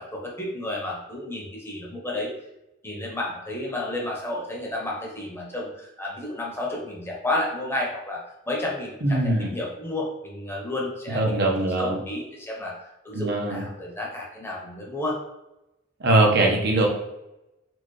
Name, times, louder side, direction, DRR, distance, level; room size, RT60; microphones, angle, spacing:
voice 1, 0.0-2.3 2.8-11.4 11.6-12.8 13.0-15.2, left 1 dB, 10° left, -2 dB, 0.8 m, -31 dB
voice 2, 9.0-9.5 11.1-12.0 13.1-13.6 16.0-16.9, right 2 dB, 60° right, 0 dB, 0.8 m, -21 dB
4.3 x 2.4 x 3.1 m, 0.91 s
head